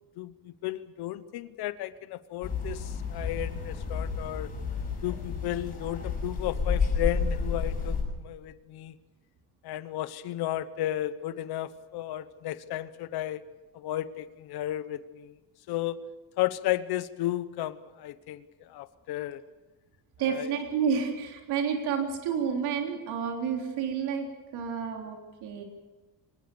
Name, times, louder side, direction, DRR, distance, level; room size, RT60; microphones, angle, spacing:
voice 1, 0.2-4.5 5.0-8.9 9.6-13.4 13.7-15.4 15.7-16.0 16.4-19.4 20.2-20.5, left 14 dB, 75° left, 13 dB, 1.0 m, -34 dB
sound 1, 2.4-8.0, left 5 dB, 20° left, 7.8 m, -31 dB
voice 2, 20.2-25.6, right 7 dB, 80° right, 2 dB, 3.6 m, -30 dB
24.5 x 19.5 x 7.0 m, 1.2 s
cardioid pair, 175°, 39 cm